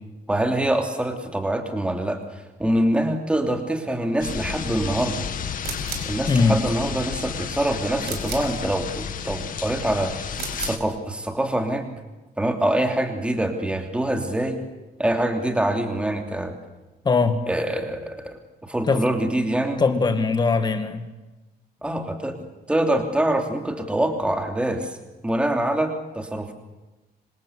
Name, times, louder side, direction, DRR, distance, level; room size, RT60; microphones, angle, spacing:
voice 1, 0.3-2.2 2.6-5.3 6.1-10.1 10.6-11.9 12.4-14.6 15.0-16.5 17.5-19.8 21.8-22.4 22.7-25.0 25.2-26.5, right 1 dB, 5° right, 4 dB, 3.0 m, -25 dB
sound 1, 4.2-10.8, left 7 dB, 55° left, 2.0 m, -32 dB
sound 2, 5.6-6.2 8.0-8.6 10.3-10.9, right 7 dB, 75° right, 5.6 m, -34 dB
voice 2, 6.3-6.6 17.0-17.4 18.9-19.0 19.8-21.1, left 4 dB, 25° left, 9 dB, 2.1 m, -20 dB
26.5 x 25.5 x 8.2 m, 1.1 s
cardioid pair, 170°, 17 cm